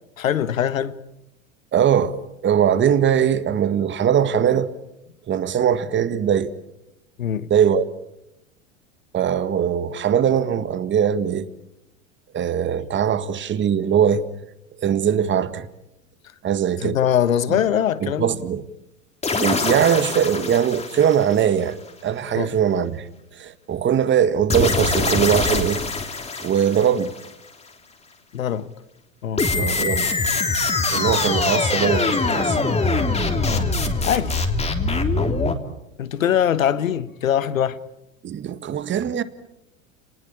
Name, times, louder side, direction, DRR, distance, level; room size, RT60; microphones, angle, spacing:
voice 1, 0.2-1.0 7.2-7.5 16.8-18.4 22.4-22.5 28.3-28.7 29.2-29.5 33.4-33.7 34.0-34.4 36.0-37.8, left 9 dB, 85° left, 1.4 m, -22 dB
voice 2, 1.7-4.7 5.3-6.5 7.5-7.9 9.1-11.5 12.3-14.2 14.8-15.7 16.4-17.0 17.5-17.6 18.0-18.6 19.3-21.8 22.0-23.1 23.3-25.8 26.4-27.1 29.6-30.1 30.9-32.6 38.2-39.2, right 8 dB, 30° right, 1.8 m, -21 dB
sound 1, 19.2-21.9 24.5-27.3 29.4-35.5, left 3 dB, 15° left, 3.2 m, -23 dB
30.0 x 20.0 x 8.8 m
hypercardioid pair, 95°, 39 cm